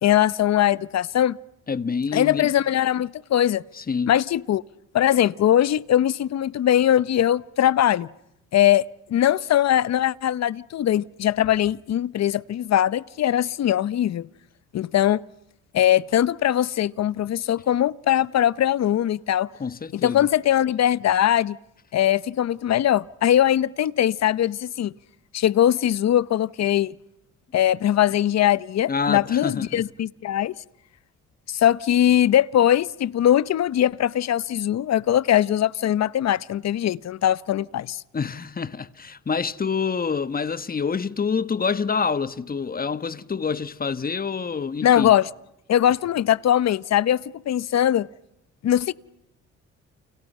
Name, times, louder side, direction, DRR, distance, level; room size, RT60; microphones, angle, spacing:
voice 1, 0.0-1.4 2.1-3.6 4.1-4.6 4.9-8.1 8.5-14.3 14.7-15.2 15.7-19.5 19.9-21.6 21.9-24.9 25.3-26.9 27.5-30.5 31.5-38.0 44.8-45.3 45.7-48.1 48.6-48.9, left 11 dB, 60° left, 0.9 m, -21 dB
voice 2, 1.7-2.5 3.8-4.1 19.6-20.3 28.9-29.8 38.1-45.1, left 5 dB, 30° left, 1.3 m, -27 dB
30.0 x 30.0 x 5.5 m
cardioid pair, 90°, 30 cm